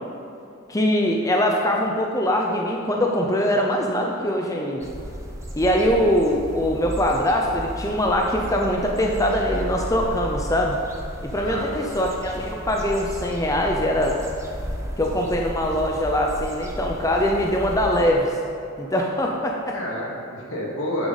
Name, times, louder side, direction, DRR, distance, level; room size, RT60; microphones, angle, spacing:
voice 1, 0.7-4.9 5.5-10.8 11.2-14.2 15.0-18.3 18.8-19.8, equal, 15° left, 0 dB, 0.6 m, -22 dB
sound 1, 4.8-18.1, equal, 15° right, 0.9 m, -34 dB
voice 2, 11.4-12.0 19.7-21.1, left 1 dB, 75° left, -3 dB, 2.3 m, -29 dB
9.9 x 8.3 x 4.1 m, 2.7 s
head